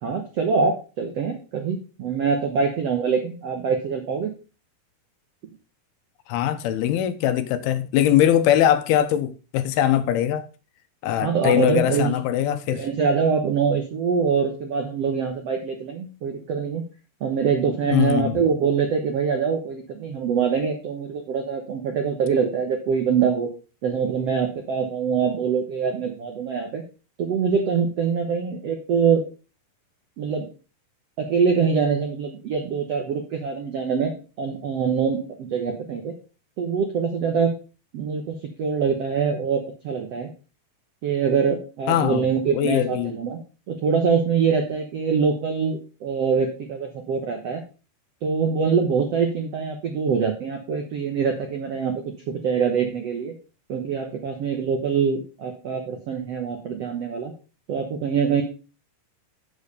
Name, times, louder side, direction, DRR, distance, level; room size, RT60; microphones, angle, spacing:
voice 1, 0.0-4.3 5.4-5.5 11.2-12.2 12.7-16.8 17.2-23.5 23.8-26.8 27.2-29.2 30.2-30.5 31.2-36.1 36.6-37.5 37.9-40.3 41.0-43.4 43.7-47.6 48.2-53.3 53.7-57.3 57.7-58.4, right 6 dB, 85° right, 1.3 m, -24 dB
voice 2, 6.3-10.5 11.0-12.9 17.9-18.4 41.9-42.3 42.5-43.1, left 11 dB, 80° left, 2.5 m, -21 dB
8.0 x 6.8 x 5.3 m
omnidirectional pair, 4.7 m